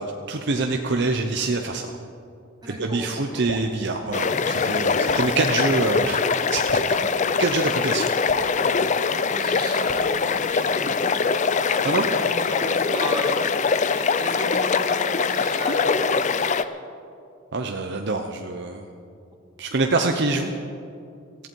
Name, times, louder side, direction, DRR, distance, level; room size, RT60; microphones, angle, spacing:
voice 1, 0.0-1.9 2.6-6.2 6.5-6.8 7.4-8.1 11.8-12.1 17.5-18.9 19.6-20.5, right 3 dB, 55° right, 4 dB, 0.7 m, -25 dB
voice 2, 2.6-3.4 6.9-7.4 9.2-11.3 11.6-13.5 13.9-16.7, equal, 20° right, -3 dB, 2.4 m, -36 dB
Drip, 3.5-3.7 5.1-5.3 6.7-6.9 8.3-8.5 9.9-10.2, left 3 dB, 65° left, 0.9 m, -34 dB
sound 1, 4.1-16.6, left 5 dB, 35° left, 0.4 m, -23 dB
18.5 x 14.5 x 4.6 m, 2.5 s
head